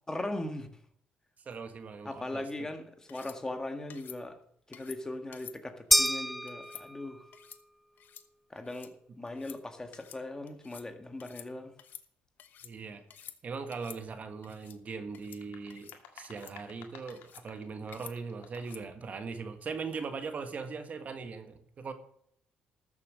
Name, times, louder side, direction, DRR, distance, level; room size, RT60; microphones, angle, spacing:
voice 1, 0.1-0.7 2.1-4.3 4.7-7.2 8.5-11.7, left 2 dB, 15° left, 7 dB, 1.7 m, -39 dB
voice 2, 1.4-2.7 12.6-13.0 13.4-21.9, right 5 dB, 45° right, 8 dB, 1.5 m, -40 dB
sound 1, 3.1-3.4 3.9-4.2 4.7-5.0 5.3-5.6 5.9-6.2 6.5-6.8 7.3-7.6 8.0-8.3 8.6-8.9 9.3-9.6 9.9-10.2 10.5-10.9 11.2-11.5 11.8-12.7 13.1-13.4 13.7-14.0 14.4-14.8 15.1-15.4 15.7-16.0 16.2-16.6 17.1-17.5 17.9-18.2 18.5-18.8, left 9 dB, 65° left, 1.0 m, -50 dB
sound 2, 5.9-7.4, equal, ahead, 0.4 m, -28 dB
sound 3, 15.3-18.9, left 8 dB, 90° left, 1.8 m, -54 dB
13.0 x 7.2 x 6.3 m, 0.67 s
cardioid pair, 80°, 3 cm